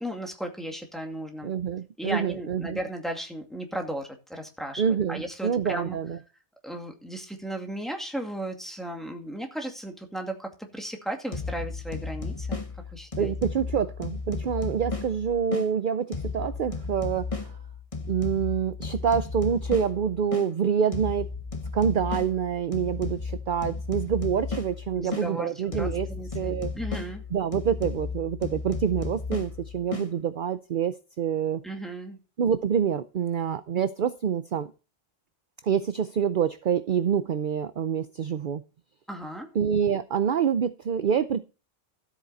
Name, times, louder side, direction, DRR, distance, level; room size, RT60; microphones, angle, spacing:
voice 1, 0.0-1.5 2.0-4.8 5.1-6.0 6.6-12.6 12.9-13.3 25.0-27.2 31.6-32.2 39.1-39.5, right 1 dB, ahead, 2.2 m, -35 dB
voice 2, 1.4-2.8 4.8-6.2 13.2-17.3 18.1-21.3 21.7-26.1 26.3-26.7 27.3-31.6 32.4-34.7 35.6-38.6 39.5-41.4, right 7 dB, 50° right, 0.7 m, -26 dB
sound 1, 11.3-15.7 16.1-20.5 20.9-25.3 25.7-30.1, left 4 dB, 30° left, 1.3 m, -34 dB
13.5 x 8.2 x 4.1 m
omnidirectional pair, 1.2 m